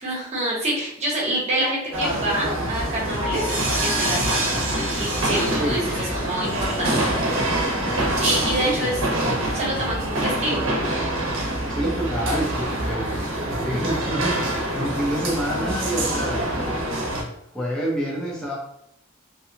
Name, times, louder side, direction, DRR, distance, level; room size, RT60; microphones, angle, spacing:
voice 1, 0.0-4.5 5.0-7.0 8.2-10.8, right 1 dB, 30° right, -4 dB, 0.9 m, -27 dB
sound 1, 1.9-17.2, right 1 dB, 65° right, 0.7 m, -25 dB
sound 2, 2.6-10.2, equal, 45° left, 0.6 m, -34 dB
voice 2, 4.2-4.5 5.5-5.9 8.6-8.8 9.2-9.3 11.7-16.7 17.5-18.6, equal, 5° left, -5 dB, 0.6 m, -28 dB
2.7 x 2.3 x 2.7 m, 0.73 s
head